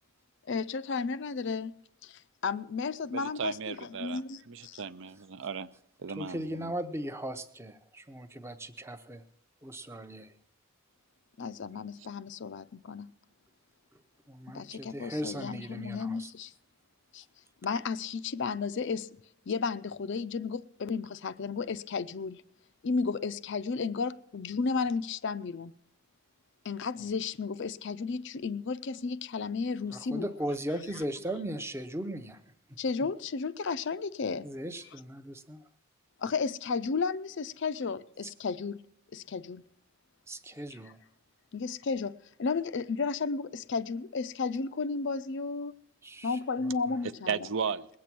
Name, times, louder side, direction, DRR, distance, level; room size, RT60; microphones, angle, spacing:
voice 1, 0.5-1.7 2.0-4.8 11.4-13.1 14.5-16.5 17.1-17.2 17.6-19.1 19.5-22.4 22.8-25.7 26.6-30.3 32.8-34.5 36.2-38.8 39.1-39.6 41.5-42.1 42.4-45.7 46.2-47.4, left 4 dB, 55° left, 0.4 m, -33 dB
voice 2, 3.1-5.7 6.0-6.7 47.0-47.9, right 6 dB, 55° right, 0.5 m, -36 dB
voice 3, 6.1-9.2 9.6-10.3 14.3-16.3 29.9-32.4 34.4-35.6 40.3-41.0 46.0-46.4 46.9-47.0, right 1 dB, 10° right, 0.6 m, -38 dB
20.5 x 8.4 x 6.0 m
head